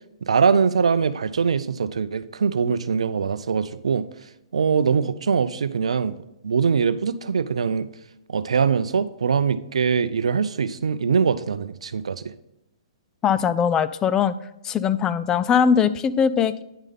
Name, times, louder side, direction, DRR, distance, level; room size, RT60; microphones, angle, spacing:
voice 1, 0.2-4.1 4.5-6.2 6.4-7.9 8.3-12.3, right 6 dB, 80° right, 15 dB, 0.5 m, -22 dB
voice 2, 13.2-14.3 14.6-16.6, left 7 dB, 20° left, 14 dB, 0.3 m, -20 dB
9.7 x 5.4 x 3.6 m, 0.87 s
hypercardioid pair, 135°, 3 cm